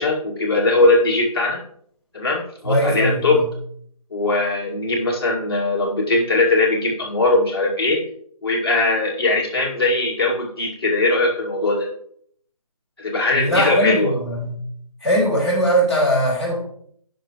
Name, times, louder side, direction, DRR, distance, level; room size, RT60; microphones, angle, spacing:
voice 1, 0.0-1.6 2.1-3.4 4.1-8.0 8.4-11.9 13.0-14.1, left 2 dB, 40° left, -3 dB, 2.3 m, -20 dB
voice 2, 2.6-3.5 13.3-14.6 15.0-16.6, equal, 5° right, -11 dB, 3.8 m, -20 dB
17.0 x 6.3 x 3.1 m, 0.64 s
hypercardioid pair, 175°, 19 cm